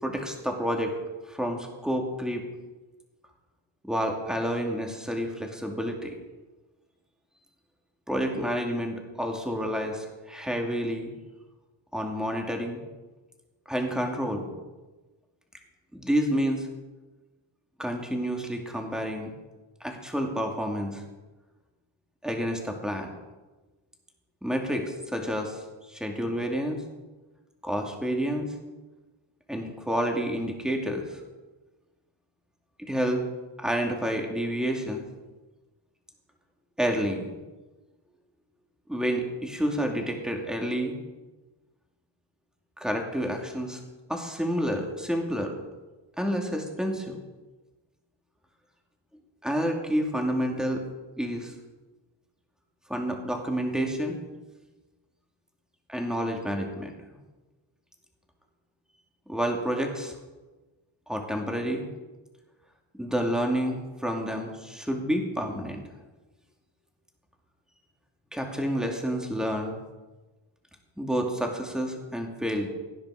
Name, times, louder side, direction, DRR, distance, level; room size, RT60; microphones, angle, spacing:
voice 1, 0.0-0.9 1.3-2.4 3.8-6.1 8.1-11.1 11.9-12.8 13.7-14.5 15.9-16.7 17.8-19.3 19.8-21.0 22.2-23.1 24.4-25.6 25.9-26.8 27.6-28.5 29.5-31.2 32.8-33.2 33.6-35.0 36.8-37.4 38.9-40.9 42.8-43.8 44.1-45.6 46.2-47.2 49.4-50.8 51.2-51.5 52.9-54.2 55.9-56.9 59.3-60.1 61.1-61.8 63.0-65.8 68.3-69.7 71.0-72.7, equal, ahead, 2 dB, 2.4 m, -29 dB
17.5 x 10.5 x 4.9 m, 1.2 s
cardioid pair, 110°, 49 cm